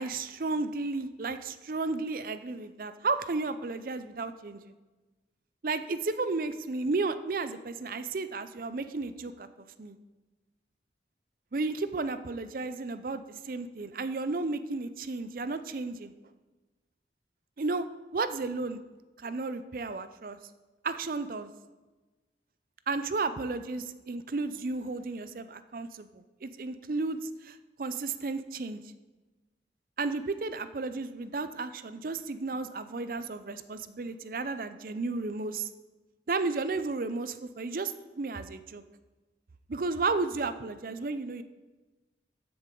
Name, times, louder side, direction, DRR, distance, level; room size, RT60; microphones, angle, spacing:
voice 1, 0.0-4.7 5.6-9.5 9.8-10.0 11.5-16.1 17.6-17.9 18.1-18.8 19.2-20.4 20.8-21.5 22.9-28.8 30.0-35.7 36.3-38.8 39.7-41.4, right 3 dB, 50° right, 12 dB, 0.5 m, -33 dB
15.0 x 6.9 x 3.8 m, 1.2 s
head